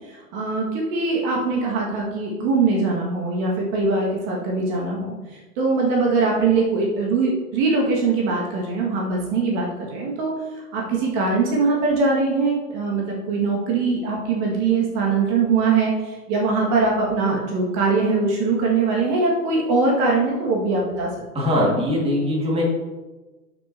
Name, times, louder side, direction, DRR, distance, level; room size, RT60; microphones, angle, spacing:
voice 1, 0.1-5.2 5.6-10.3 10.7-21.1, right 4 dB, 35° right, -2 dB, 1.9 m, -22 dB
voice 2, 21.3-22.6, left 1 dB, 10° right, -3 dB, 1.9 m, -21 dB
11.5 x 6.0 x 2.8 m, 1.2 s
figure-of-eight pair, 110°, 48 cm